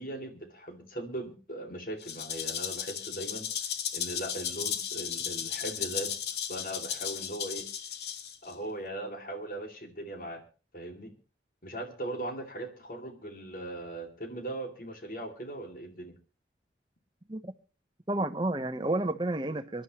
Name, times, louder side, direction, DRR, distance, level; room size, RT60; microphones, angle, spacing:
voice 1, 0.0-3.5 3.9-6.1 6.5-7.6 8.4-10.4 10.7-11.1 11.6-16.1, right 1 dB, 50° left, 2.5 m, -39 dB
Rattle (instrument), 2.0-8.5, left 8 dB, 65° left, 1.3 m, -35 dB
voice 2, 18.1-19.8, right 2 dB, 25° right, 0.9 m, -30 dB
24.5 x 11.5 x 3.0 m
head